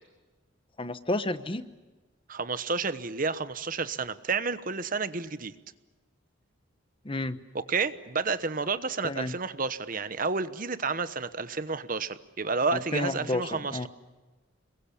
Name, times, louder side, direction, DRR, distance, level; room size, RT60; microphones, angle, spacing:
voice 1, 0.8-1.7 7.0-7.4 9.0-9.3 12.7-13.4 13.7-13.9, left 2 dB, 25° left, 12 dB, 1.0 m, -30 dB
voice 2, 2.3-5.5 7.5-13.9, right 4 dB, 45° right, 13 dB, 1.1 m, -30 dB
27.5 x 22.0 x 8.6 m, 1.2 s
head